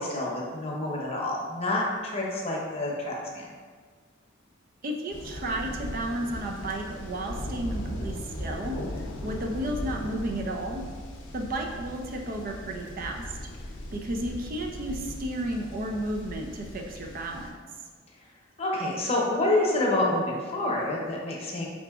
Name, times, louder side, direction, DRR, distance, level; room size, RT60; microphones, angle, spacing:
voice 1, 0.0-3.5 18.6-21.7, left 2 dB, 30° left, -3 dB, 0.8 m, -28 dB
voice 2, 4.8-10.8 11.3-13.2 13.9-17.5, right 1 dB, 45° right, 1 dB, 0.4 m, -33 dB
sound 1, 5.1-17.5, left 1 dB, 65° left, 0.6 m, -38 dB
4.8 x 3.7 x 2.3 m, 1.5 s
head